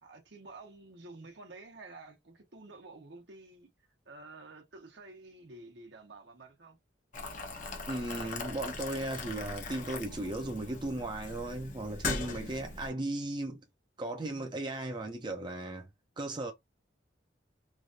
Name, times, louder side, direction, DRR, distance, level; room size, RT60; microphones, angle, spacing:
voice 1, 0.0-6.8, right 2 dB, 70° right, 1.1 m, -51 dB
Boiling, 7.1-12.9, left 3 dB, 45° left, 0.7 m, -40 dB
voice 2, 7.9-13.6 14.0-15.9 16.2-16.5, right 2 dB, 25° right, 0.5 m, -36 dB
3.2 x 2.5 x 2.5 m
head